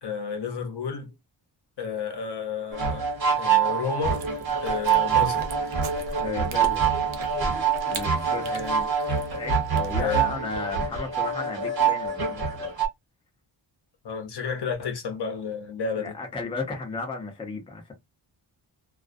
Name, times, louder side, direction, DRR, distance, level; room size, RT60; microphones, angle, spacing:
voice 1, 0.0-1.1 1.8-3.1 3.4-4.3 4.6-5.4 8.5-8.9 10.0-10.3 14.0-16.1, left 6 dB, 55° left, 0.7 m, -31 dB
sound 1, 2.7-12.9, right 7 dB, 50° right, 1.1 m, -25 dB
Chewing mastication, 4.1-10.2, right 3 dB, 80° right, 0.7 m, -40 dB
voice 2, 6.2-6.9 7.9-8.6 9.3-12.8 16.0-17.9, left 3 dB, 10° left, 0.5 m, -34 dB
2.3 x 2.1 x 2.5 m
wide cardioid pair, 145°, 48 cm